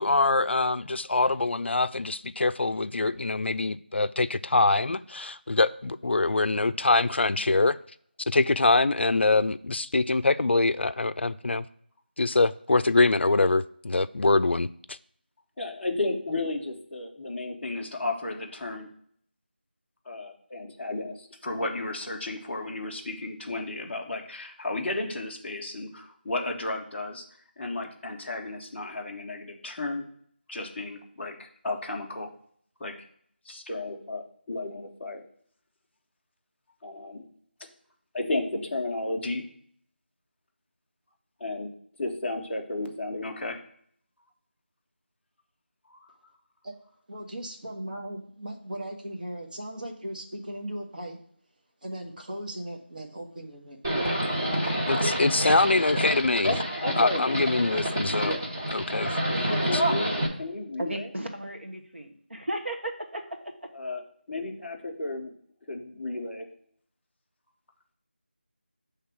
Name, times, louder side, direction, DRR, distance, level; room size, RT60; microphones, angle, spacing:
voice 1, 0.0-7.8 8.3-11.6 12.2-15.0 54.9-56.5 57.0-58.3 58.7-59.8, left 3 dB, 85° left, 0.3 m, -24 dB
voice 2, 15.6-18.9 20.1-27.2 27.6-30.0 30.5-32.3 32.8-33.0 33.4-35.2 36.8-37.3 38.1-39.4 41.4-41.7 42.0-43.6 45.9-46.0 55.5-55.6 55.9-56.2 56.4-57.4 58.2-58.4 59.6-61.1 63.7-65.3 65.7-66.5, left 2 dB, 5° left, 0.4 m, -33 dB
voice 3, 47.1-51.2 51.8-53.8 54.7-54.9, right 1 dB, 50° right, 1.3 m, -38 dB
Livestock farm animals working animals, 53.8-60.3, right 1 dB, 20° right, 0.9 m, -28 dB
voice 4, 60.8-63.2, right 1 dB, 80° right, 1.5 m, -34 dB
6.3 x 3.3 x 5.9 m
figure-of-eight pair, 175°, 6 cm